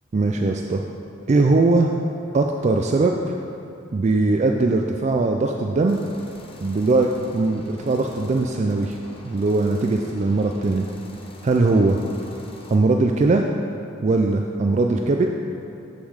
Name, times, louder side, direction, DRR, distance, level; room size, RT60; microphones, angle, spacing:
voice 1, 0.1-0.8 1.3-1.9 2.3-3.3 3.9-6.0 6.6-9.0 9.2-10.9 11.4-12.0 12.7-13.4 14.0-15.3, right 3 dB, 35° right, 3 dB, 0.3 m, -20 dB
sound 1, 5.9-12.8, left 1 dB, 30° left, 0.8 m, -45 dB
7.5 x 7.0 x 4.8 m, 2.8 s
head